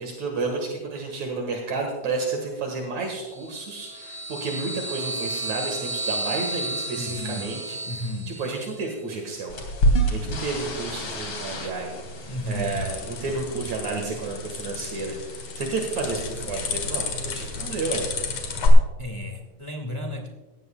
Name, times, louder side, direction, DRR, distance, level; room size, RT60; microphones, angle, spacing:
voice 1, 0.0-7.8 8.3-9.6 10.1-18.0, right 3 dB, 70° right, 2 dB, 2.9 m, -31 dB
sound 1, 3.3-8.8, right 2 dB, 35° right, 3.3 m, -33 dB
voice 2, 6.9-7.5 7.8-8.4 12.3-12.7 19.0-20.3, left 1 dB, 15° left, 2 dB, 1.2 m, -33 dB
sound 2, 9.5-18.7, equal, 45° left, 3.2 m, -30 dB
sound 3, 12.0-18.7, left 5 dB, 65° left, 2.8 m, -33 dB
18.5 x 15.5 x 2.3 m, 1.2 s
omnidirectional pair, 3.3 m